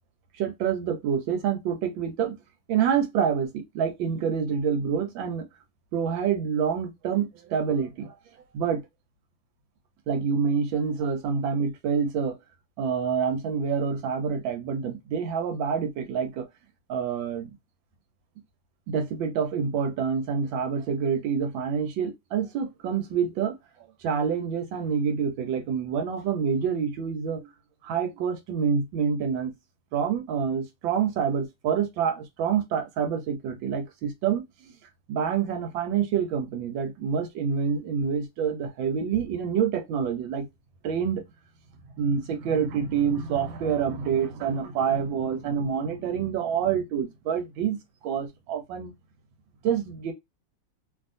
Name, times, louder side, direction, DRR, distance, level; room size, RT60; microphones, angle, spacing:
voice 1, 0.4-2.4 2.7-5.5 5.9-8.1 8.5-8.8 10.1-12.4 12.8-16.5 16.9-17.5 18.9-27.5 27.8-29.5 29.9-34.4 35.1-40.5 40.8-41.2 42.0-47.8 48.0-48.9 49.6-50.1, right 7 dB, 85° right, 1.5 m, -27 dB
2.9 x 2.8 x 2.5 m
omnidirectional pair, 2.0 m